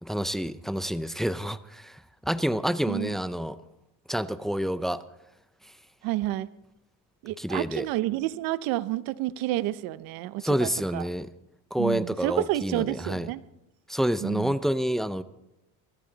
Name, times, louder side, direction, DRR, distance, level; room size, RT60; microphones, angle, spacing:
voice 1, 0.0-3.6 4.1-5.0 7.4-7.9 10.4-11.3 11.7-13.3 13.9-15.2, equal, ahead, 13 dB, 0.5 m, -28 dB
voice 2, 6.0-6.5 7.2-11.1 11.8-13.4 14.2-14.5, right 15 dB, 80° right, 16 dB, 0.8 m, -30 dB
23.0 x 14.0 x 4.0 m, 0.88 s
cardioid pair, 125°, 35 cm